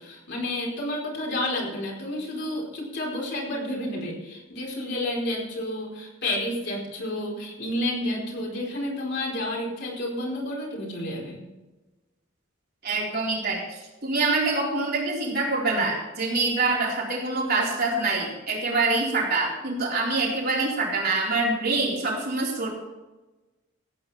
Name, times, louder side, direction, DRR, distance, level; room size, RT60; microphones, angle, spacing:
voice 1, 0.0-11.4, left 1 dB, 60° left, -3 dB, 4.5 m, -30 dB
voice 2, 12.8-22.7, right 3 dB, 50° right, -3 dB, 4.1 m, -25 dB
15.5 x 9.2 x 4.3 m, 1.1 s
head